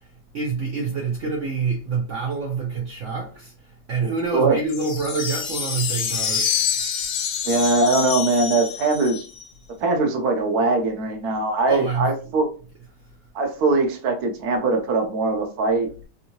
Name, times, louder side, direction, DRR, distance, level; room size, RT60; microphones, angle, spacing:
voice 1, 0.0-6.5 11.7-12.2 13.0-13.1, right 4 dB, 80° right, 0.6 m, -27 dB
sound 1, 4.7-9.4, left 7 dB, 60° left, 1.1 m, -27 dB
voice 2, 7.4-9.3 9.8-12.5 13.3-16.0, right 3 dB, 65° right, 1.1 m, -21 dB
3.6 x 2.6 x 2.8 m
omnidirectional pair, 2.1 m